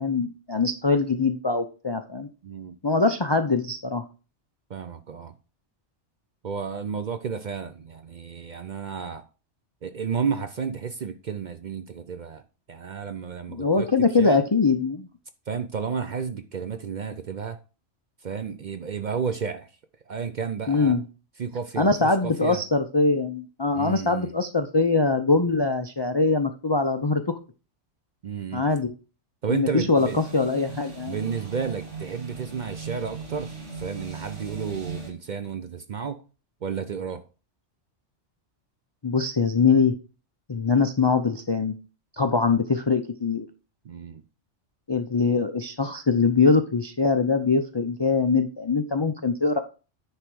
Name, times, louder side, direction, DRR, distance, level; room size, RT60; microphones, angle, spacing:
voice 1, 0.0-2.3 2.8-4.0 13.5-15.1 20.7-21.0 21.8-27.2 28.5-28.9 29.5-31.2 39.0-40.0 40.5-41.7 42.2-43.5 44.9-49.6, left 4 dB, 40° left, 0.4 m, -23 dB
voice 2, 2.4-2.8 4.7-5.3 6.4-9.2 9.8-12.4 12.7-13.9 14.2-14.4 15.5-17.6 18.2-19.7 20.1-21.0 21.4-22.6 23.7-24.3 28.2-28.6 29.4-30.2 31.1-36.2 36.6-37.2 43.8-44.2, right 6 dB, 50° right, 0.6 m, -32 dB
sound 1, 29.9-35.1, right 4 dB, 80° right, 2.4 m, -38 dB
9.8 x 3.4 x 6.1 m
omnidirectional pair, 1.2 m